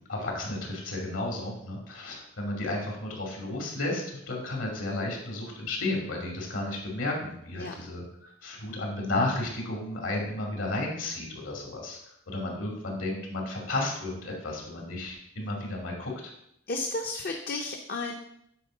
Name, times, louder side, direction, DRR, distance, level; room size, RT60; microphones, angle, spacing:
voice 1, 0.1-12.0 12.3-16.3, left 2 dB, 75° left, 0 dB, 2.6 m, -33 dB
voice 2, 16.7-18.1, left 2 dB, 50° left, 3 dB, 0.7 m, -33 dB
9.3 x 4.4 x 6.4 m, 0.75 s
head